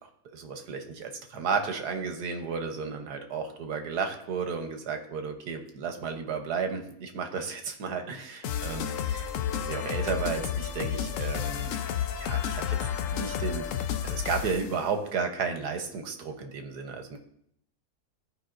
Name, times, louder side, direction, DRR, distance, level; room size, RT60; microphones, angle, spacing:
voice 1, 0.0-9.2 9.6-11.8 12.1-12.8 13.1-13.7 14.0-17.2, right 5 dB, 85° right, 5 dB, 1.5 m, -33 dB
sound 1, 8.4-14.7, left 9 dB, 65° left, 0.9 m, -31 dB
15.0 x 5.0 x 2.5 m, 0.71 s
omnidirectional pair, 1.7 m